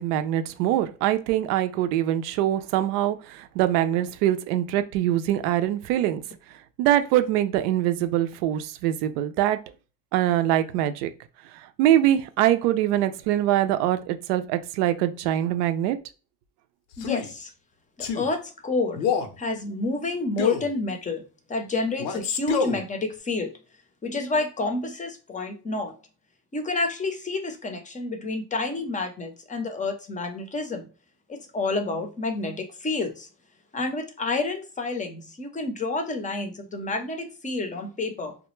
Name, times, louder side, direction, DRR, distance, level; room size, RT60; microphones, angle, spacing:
voice 1, 0.0-6.2 6.8-9.6 10.1-11.1 11.8-16.0, right 12 dB, 70° right, 10 dB, 0.5 m, -23 dB
Male speech man speaking, 16.9-17.3 18.0-18.3 19.0-19.4 20.4-20.7 22.0-22.8, left 7 dB, 75° left, 0.7 m, -27 dB
voice 2, 17.0-17.5 18.0-19.0 19.4-23.5 24.0-26.0 26.5-30.9 31.3-33.3 33.7-38.4, left 3 dB, 15° left, 5 dB, 0.6 m, -29 dB
2.2 x 2.0 x 3.0 m, 0.35 s
hypercardioid pair, 85°, 49 cm